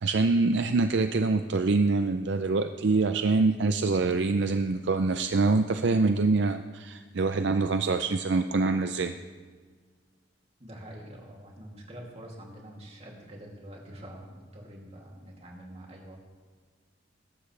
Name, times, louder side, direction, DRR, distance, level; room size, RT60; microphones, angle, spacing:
voice 1, 0.0-9.1, right 3 dB, 65° right, 8 dB, 0.5 m, -25 dB
voice 2, 10.6-16.2, right 1 dB, 35° right, -2 dB, 2.7 m, -45 dB
21.0 x 12.0 x 3.3 m, 1.5 s
head